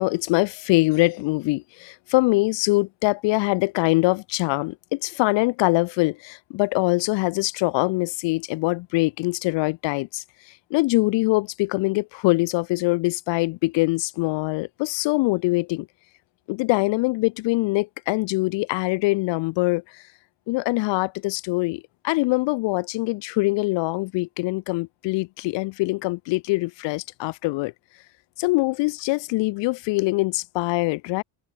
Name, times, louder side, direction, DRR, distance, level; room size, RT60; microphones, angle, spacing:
voice 1, 0.0-10.2 10.7-15.9 16.5-20.0 20.5-27.7 28.4-31.2, left 23 dB, 75° left, 0.6 m, -23 dB
cardioid pair, 95°, 44 cm